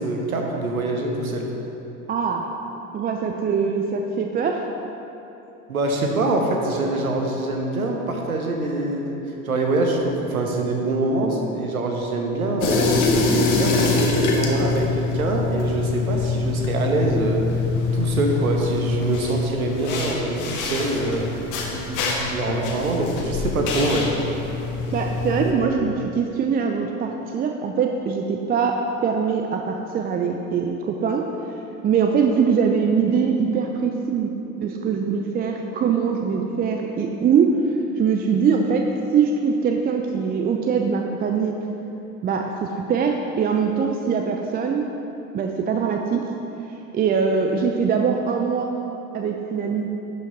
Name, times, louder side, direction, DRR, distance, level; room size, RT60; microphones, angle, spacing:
voice 1, 0.0-1.5 5.7-13.0 13.3-17.5 17.9-21.3 21.7-24.1 25.4-25.5, right 2 dB, 80° right, 2 dB, 1.1 m, -24 dB
voice 2, 2.1-2.5 2.9-4.6 24.9-31.2 31.8-37.6 38.0-38.9 39.1-41.6 42.2-44.9 45.3-46.2 46.9-48.7 49.1-49.9, right 6 dB, 20° right, 3 dB, 0.5 m, -22 dB
sound 1, 12.6-25.5, left 3 dB, 45° left, 1.5 m, -24 dB
11.5 x 5.5 x 3.9 m, 3.0 s
figure-of-eight pair, 70°, 42 cm